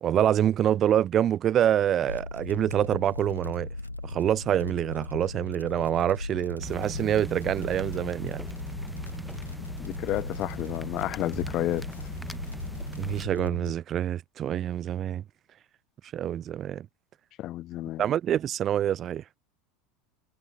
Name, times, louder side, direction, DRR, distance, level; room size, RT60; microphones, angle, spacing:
voice 1, 0.0-3.7 4.0-8.4 13.0-15.2 16.1-16.9 18.0-19.2, right 10 dB, 35° right, 0.4 m, -26 dB
sound 1, 2.1-13.7, left 2 dB, 85° left, 1.8 m, -38 dB
sound 2, 6.6-13.3, equal, ahead, 0.8 m, -40 dB
voice 2, 9.8-11.9 17.4-18.0, left 15 dB, 40° left, 0.4 m, -31 dB
figure-of-eight pair, 75°, 0 cm